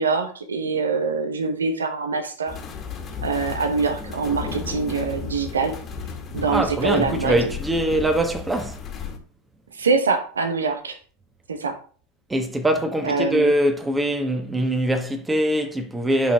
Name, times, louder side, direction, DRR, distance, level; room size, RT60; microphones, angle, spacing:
voice 1, 0.0-2.6 3.2-5.7 6.3-7.5 9.7-11.0 11.5-11.7 13.0-13.5, right 4 dB, 75° right, 1.2 m, -24 dB
sound 1, 2.5-9.2, left 5 dB, 30° left, 1.8 m, -34 dB
voice 2, 6.5-8.8 12.3-16.3, right 1 dB, 10° right, 1.3 m, -22 dB
10.0 x 5.8 x 3.5 m
figure-of-eight pair, 85°, 0 cm